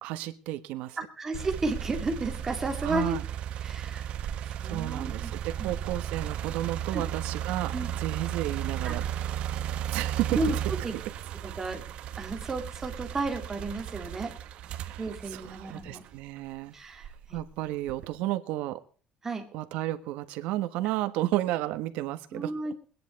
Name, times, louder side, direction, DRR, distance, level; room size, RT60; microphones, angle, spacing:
voice 1, 0.0-1.0 2.8-3.2 4.6-9.0 9.9-10.4 10.9-11.0 14.8-16.7 17.3-18.8 19.5-22.5, right 15 dB, 85° right, 9 dB, 1.3 m, -32 dB
voice 2, 1.0-3.2 3.6-4.1 4.4-5.3 5.6-5.7 6.9-7.0 7.7-7.9 8.8-9.0 10.3-10.6 10.8-10.9 11.4-11.8 12.2-14.3 15.0-16.0 16.7-17.4 19.2-19.5 22.3-22.7, right 2 dB, 15° right, 3 dB, 2.3 m, -33 dB
sound 1, 1.3-16.4 17.0-18.2, right 10 dB, 50° right, 1.1 m, -35 dB
21.5 x 10.5 x 4.1 m, 0.41 s
cardioid pair, 175°, 2 cm